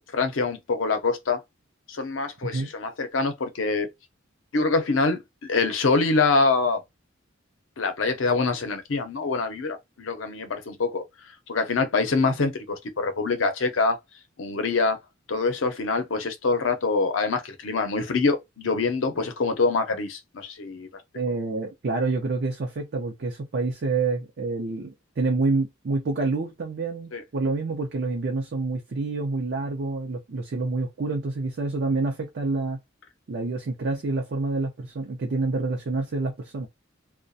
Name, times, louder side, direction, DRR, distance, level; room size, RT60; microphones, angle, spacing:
voice 1, 0.0-1.4 1.9-3.9 4.5-6.8 7.8-11.0 11.5-14.0 14.4-15.0 15.3-20.9 27.1-27.2, left 4 dB, 70° left, 0.6 m, -25 dB
voice 2, 21.1-32.8 33.3-36.7, right 3 dB, 55° right, 0.5 m, -27 dB
2.4 x 2.1 x 2.6 m
head